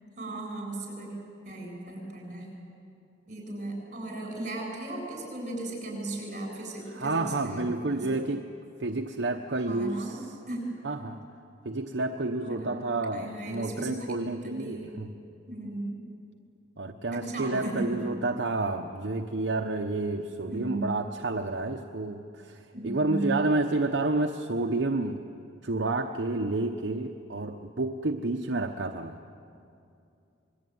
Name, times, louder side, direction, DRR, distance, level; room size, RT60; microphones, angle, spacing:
voice 1, 0.2-1.1 1.4-2.5 3.3-8.2 9.5-10.2 10.5-10.7 12.4-12.7 13.1-14.9 15.5-16.0 17.1-18.0 20.5-20.9 22.7-23.4, right 2 dB, 40° right, 1 dB, 7.9 m, -36 dB
voice 2, 6.9-8.5 8.8-10.2 10.8-11.2 11.6-15.1 16.8-25.2 25.6-29.2, right 2 dB, 70° right, 3 dB, 1.0 m, -30 dB
26.5 x 21.5 x 9.5 m, 2.5 s
head